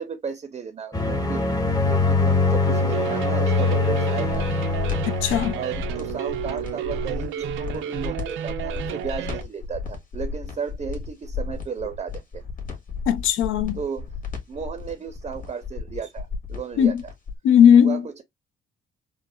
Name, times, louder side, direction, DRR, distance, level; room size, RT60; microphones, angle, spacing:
voice 1, 0.0-1.4 1.9-4.5 5.5-12.4 13.8-14.1 14.5-17.1 17.8-18.2, right 6 dB, 30° right, 0.5 m, -34 dB
sound 1, 0.9-6.0, left 3 dB, 20° left, 0.8 m, -23 dB
sound 2, 2.7-9.4, right 10 dB, 80° right, 0.4 m, -32 dB
sound 3, 4.2-17.4, left 4 dB, 40° left, 1.5 m, -34 dB
voice 2, 5.1-5.6 13.1-13.8 16.8-17.0 17.4-18.0, left 8 dB, 85° left, 0.5 m, -17 dB
4.8 x 2.1 x 2.2 m
cardioid pair, 90°, 20 cm